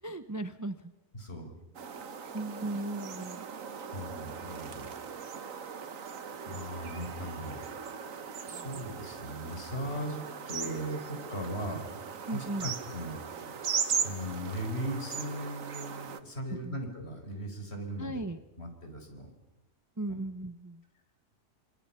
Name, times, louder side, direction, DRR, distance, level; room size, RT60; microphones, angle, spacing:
voice 1, 0.0-0.9 2.3-3.5 8.5-8.7 12.3-12.7 16.5-16.8 18.0-18.4 20.0-20.8, right 2 dB, 15° right, 10 dB, 0.7 m, -37 dB
voice 2, 1.1-1.5 3.9-4.9 5.3-5.5 6.4-7.6 8.5-12.0 12.3-13.6 13.9-18.2 18.6-19.3 20.1-20.2, equal, 50° left, 4 dB, 5.1 m, -38 dB
sound 1, 1.7-16.2, right 6 dB, 80° right, 1.6 m, -38 dB
29.5 x 25.5 x 5.8 m, 0.95 s
omnidirectional pair, 1.4 m